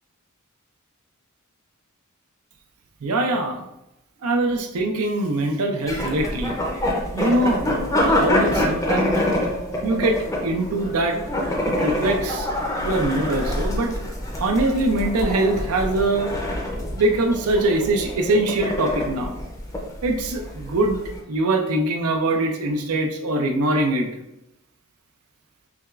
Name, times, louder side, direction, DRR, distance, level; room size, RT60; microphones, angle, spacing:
voice 1, 3.0-3.7 4.2-6.6 7.1-9.2 9.8-10.2 10.4-11.2 11.7-12.5 12.8-13.9 14.4-16.3 17.0-19.4 20.0-21.0 21.3-24.1, right 2 dB, 70° right, 4 dB, 0.5 m, -22 dB
sound 1, 5.9-21.2, left 1 dB, 15° left, 0.5 m, -26 dB
5.9 x 2.3 x 2.4 m, 0.90 s
head